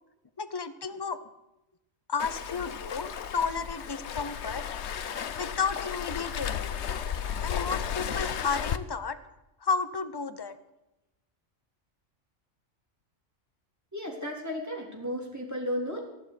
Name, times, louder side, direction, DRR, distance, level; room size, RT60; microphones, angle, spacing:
voice 1, 0.4-1.2 2.1-4.6 5.4-6.8 7.4-9.2 9.6-10.6, left 5 dB, 20° left, 11 dB, 0.8 m, -32 dB
Waves surf, 2.2-8.8, left 8 dB, 65° left, 1.1 m, -34 dB
voice 2, 13.9-16.0, equal, 15° right, -1 dB, 3.7 m, -34 dB
14.5 x 11.5 x 8.3 m, 0.94 s
omnidirectional pair, 1.3 m